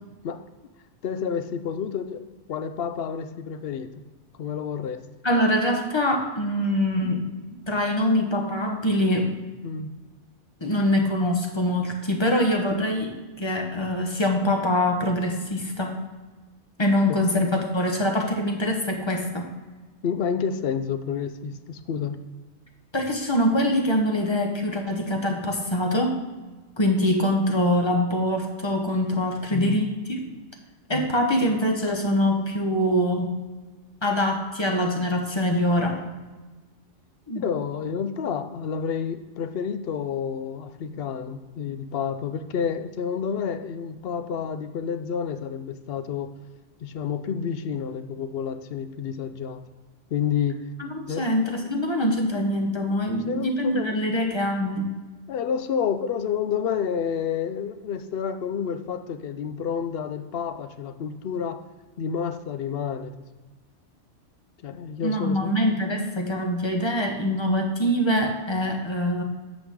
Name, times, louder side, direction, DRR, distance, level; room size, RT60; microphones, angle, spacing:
voice 1, 1.0-2.2 2.5-3.9 4.4-5.0 9.6-9.9 17.1-17.2 20.0-22.2 29.5-29.8 30.9-31.1 37.3-46.3 46.8-49.6 50.1-50.6 51.1-51.2 53.1-54.0 55.3-61.6 62.0-63.2 64.6-65.5, left 7 dB, 60° left, 10 dB, 0.7 m, -29 dB
voice 2, 5.2-7.2 7.7-9.3 10.6-15.9 16.8-19.4 22.9-26.2 26.8-30.2 30.9-33.4 34.0-36.0 37.3-37.4 50.8-54.9 65.0-69.2, left 1 dB, 25° left, 2 dB, 1.0 m, -24 dB
8.8 x 6.3 x 3.6 m, 1.2 s
omnidirectional pair, 1.3 m